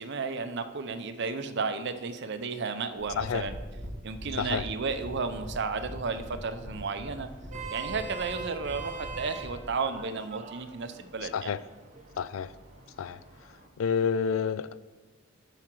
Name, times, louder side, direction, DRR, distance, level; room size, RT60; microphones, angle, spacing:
voice 1, 0.0-3.6 4.0-7.3 7.7-11.5, right 4 dB, 60° right, 9 dB, 0.7 m, -33 dB
sound 1, 3.0-9.7, equal, 15° right, 2.6 m, -42 dB
Vehicle horn car horn honking, 7.3-13.7, right 4 dB, 40° right, 1.1 m, -43 dB
voice 2, 12.2-12.5 13.0-13.2 13.8-14.9, left 6 dB, 90° left, 17 dB, 0.4 m, -29 dB
13.5 x 5.0 x 4.6 m, 1.2 s
head